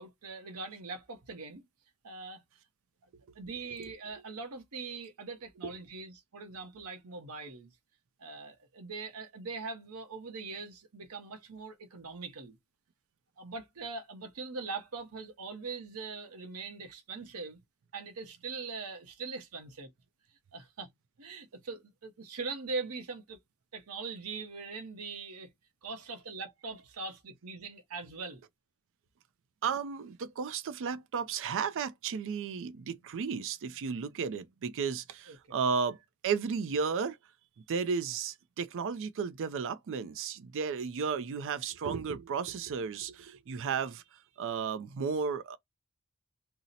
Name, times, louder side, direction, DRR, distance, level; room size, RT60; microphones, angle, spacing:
voice 1, 0.0-1.6 2.0-2.4 3.3-7.7 8.2-12.6 13.4-17.6 17.9-19.9 20.5-20.9 21.2-23.4 23.7-25.5 25.8-28.4 35.3-35.4, right 4 dB, 75° right, 0.8 m, -41 dB
voice 2, 29.6-36.0 36.2-37.2 37.7-45.6, right 6 dB, 60° right, 0.4 m, -34 dB
2.6 x 2.0 x 3.9 m
head